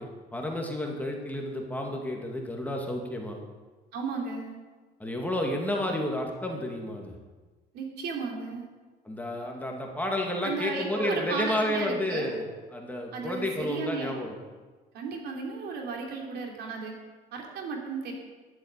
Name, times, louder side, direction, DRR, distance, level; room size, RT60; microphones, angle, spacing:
voice 1, 0.0-3.4 5.0-7.1 9.0-14.3, left 1 dB, 10° left, 1 dB, 2.1 m, -31 dB
voice 2, 3.9-4.6 7.7-8.7 10.4-12.3 13.1-14.1 14.9-16.9 17.3-18.1, right 4 dB, 75° right, 1 dB, 3.1 m, -34 dB
11.5 x 8.3 x 8.1 m, 1.3 s
cardioid pair, 110°, 17 cm